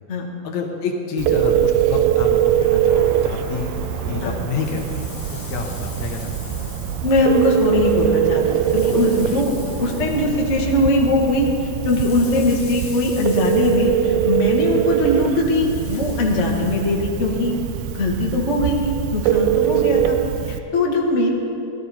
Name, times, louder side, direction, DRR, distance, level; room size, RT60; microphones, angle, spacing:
voice 1, 0.4-3.0 3.2-3.7 4.1-6.9 14.6-14.8 19.6-19.9, left 5 dB, 70° left, 2 dB, 2.2 m, -29 dB
Telephone, 1.2-20.6, right 10 dB, 80° right, 2.0 m, -22 dB
sound 1, 2.0-12.3, equal, 55° right, 4.6 m, -38 dB
sound 2, 4.3-11.1 11.4-17.5, left 6 dB, 90° left, 3.5 m, -43 dB
voice 2, 7.0-17.5 17.9-20.2 20.5-21.3, left 2 dB, 35° left, -2 dB, 1.2 m, -20 dB
18.0 x 12.5 x 4.2 m, 3.0 s
omnidirectional pair, 3.6 m